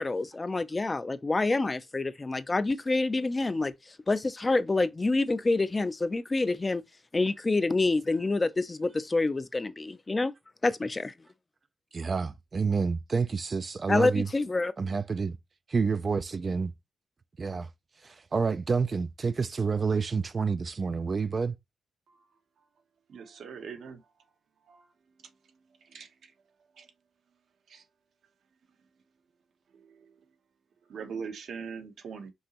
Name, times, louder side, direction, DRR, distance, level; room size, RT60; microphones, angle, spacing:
voice 1, 0.0-6.8 7.1-10.3 10.6-11.1 13.9-14.7, left 3 dB, 25° left, 0.5 m, -27 dB
voice 2, 11.9-14.3 14.8-15.4 15.7-16.7 17.4-17.7 18.0-21.5, right 5 dB, 40° right, 0.3 m, -29 dB
voice 3, 23.1-24.0 24.7-24.8 25.9-26.1 26.8-26.9 27.7-27.8 29.7-30.1 30.9-32.3, right 6 dB, 80° right, 1.0 m, -41 dB
5.4 x 2.9 x 2.9 m
wide cardioid pair, 120°, 0 cm